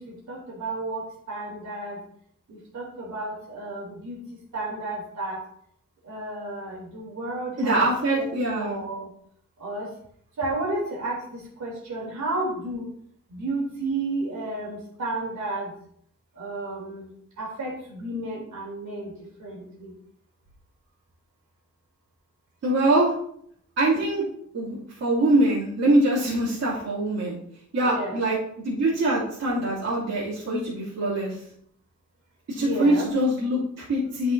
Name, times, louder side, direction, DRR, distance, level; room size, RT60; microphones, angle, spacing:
voice 1, 0.0-2.0 2.5-4.2 4.5-5.4 6.0-8.3 8.6-9.1 9.6-9.9 10.4-12.9 13.3-15.7 16.3-17.1 17.4-19.9 27.8-28.2 32.6-33.1, right 2 dB, 75° right, -4 dB, 3.1 m, -32 dB
voice 2, 7.6-8.8 22.6-23.1 23.8-24.2 24.5-27.4 27.7-28.4 28.6-31.3 32.5-34.3, right 1 dB, 60° right, -9 dB, 2.9 m, -23 dB
12.0 x 5.3 x 2.7 m, 0.67 s
wide cardioid pair, 170°, 29 cm